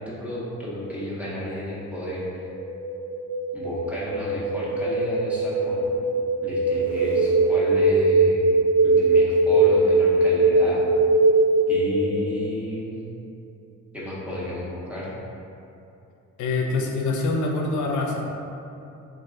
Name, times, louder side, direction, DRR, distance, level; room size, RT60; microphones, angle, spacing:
voice 1, 0.0-2.5 3.5-5.9 6.4-8.4 8.8-10.8 11.7-13.1 13.9-15.1, left 1 dB, 5° right, -8 dB, 0.6 m, -32 dB
sound 1, 2.4-12.4, right 2 dB, 70° right, 0.5 m, -21 dB
voice 2, 16.4-18.3, left 3 dB, 80° left, 1 dB, 0.5 m, -25 dB
3.1 x 2.5 x 3.7 m, 2.7 s
cardioid pair, 160°, 30 cm